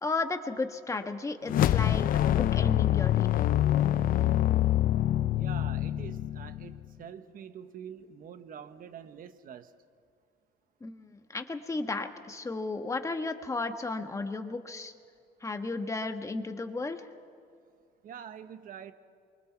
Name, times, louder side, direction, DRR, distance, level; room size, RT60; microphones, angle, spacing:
voice 1, 0.0-3.5 10.8-14.9 15.4-17.0, left 3 dB, 20° left, 6 dB, 1.4 m, -34 dB
sound 1, 1.5-6.9, left 12 dB, 55° left, 0.5 m, -25 dB
voice 2, 5.3-9.7 18.0-18.9, right 8 dB, 55° right, 10 dB, 1.3 m, -45 dB
27.5 x 23.5 x 4.6 m, 2.4 s
cardioid pair, 110°, 17 cm